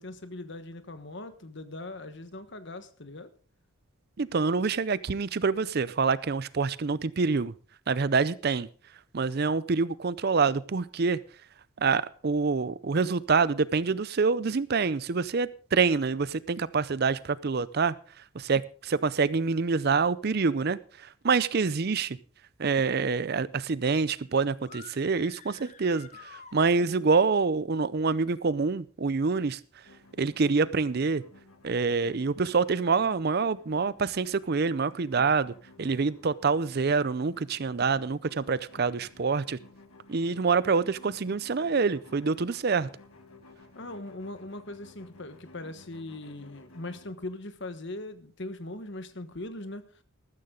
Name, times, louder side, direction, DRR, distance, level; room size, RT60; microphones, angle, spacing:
voice 1, 0.0-3.3 43.7-49.8, left 2 dB, 55° left, 1.3 m, -40 dB
voice 2, 4.2-7.5 7.9-8.7 9.1-11.2 11.8-17.9 18.3-22.2 22.6-29.6 30.2-31.2 31.6-39.6 40.1-42.9, right 4 dB, 45° right, 0.5 m, -26 dB
sound 1, 24.6-27.2, left 6 dB, 30° left, 0.8 m, -50 dB
sound 2, 29.8-47.1, left 2 dB, 75° left, 1.7 m, -55 dB
13.5 x 13.5 x 3.8 m
head